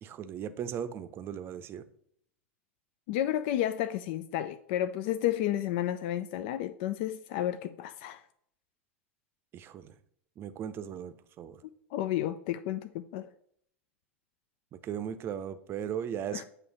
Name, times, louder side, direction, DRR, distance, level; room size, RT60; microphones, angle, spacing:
voice 1, 0.0-1.8 9.5-9.9 10.4-11.6 14.7-16.4, right 9 dB, 35° right, 0.6 m, -37 dB
voice 2, 3.1-8.2 11.9-13.3 16.3-16.4, left 12 dB, 50° left, 0.4 m, -31 dB
7.8 x 3.2 x 6.2 m
figure-of-eight pair, 85°, 7 cm